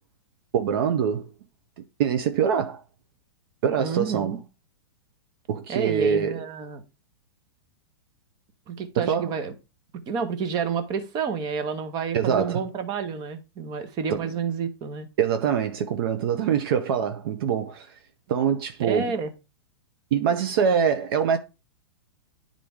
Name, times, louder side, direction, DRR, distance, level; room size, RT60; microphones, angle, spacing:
voice 1, 0.5-1.3 2.0-2.8 3.6-4.4 5.5-6.5 9.0-9.3 12.1-12.6 14.1-14.3 15.2-17.9 18.3-19.1 20.1-21.4, right 7 dB, 60° right, 0.8 m, -24 dB
voice 2, 3.8-4.4 5.7-6.8 8.7-9.5 10.1-15.1 18.8-19.3, right 6 dB, 30° right, 1.1 m, -29 dB
9.9 x 3.8 x 3.6 m
hypercardioid pair, 130°, 14 cm